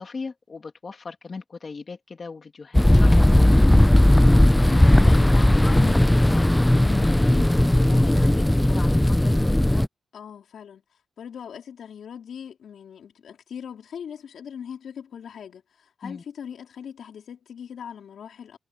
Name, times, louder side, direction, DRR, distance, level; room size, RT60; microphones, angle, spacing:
voice 1, 0.0-3.9 4.5-7.4 7.7-9.4 16.0-16.2, left 4 dB, 40° left, 2.5 m, -36 dB
sound 1, 2.7-9.9, left 1 dB, 5° left, 0.5 m, -17 dB
voice 2, 4.5-4.8 10.1-10.8 11.2-18.6, left 8 dB, 80° left, 4.4 m, -40 dB
wide cardioid pair, 130°, 0 cm